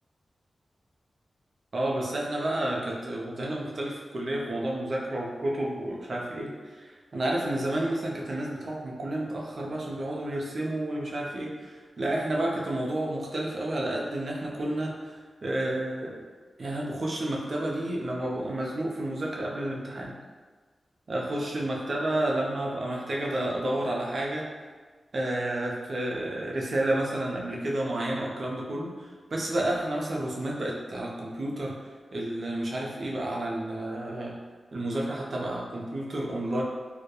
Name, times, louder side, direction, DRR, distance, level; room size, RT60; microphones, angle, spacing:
voice 1, 1.7-16.2 16.6-20.2 21.1-24.5 25.1-31.7 32.1-34.4 34.7-36.6, right 1 dB, 55° right, -2 dB, 0.4 m, -30 dB
2.2 x 2.1 x 2.8 m, 1.4 s
wide cardioid pair, 85°, 0 cm